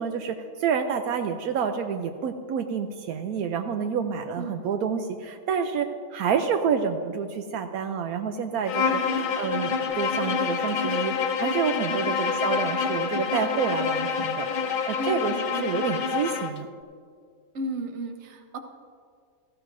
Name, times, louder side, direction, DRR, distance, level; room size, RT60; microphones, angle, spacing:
voice 1, 0.0-9.0 9.4-16.7, right 6 dB, 80° right, 6 dB, 1.1 m, -28 dB
Bowed string instrument, 8.7-16.6, left 6 dB, 75° left, 0.4 m, -27 dB
voice 2, 15.0-15.7 17.5-18.6, right 1 dB, 55° right, 5 dB, 1.2 m, -34 dB
17.0 x 14.0 x 2.6 m, 2.1 s
omnidirectional pair, 1.5 m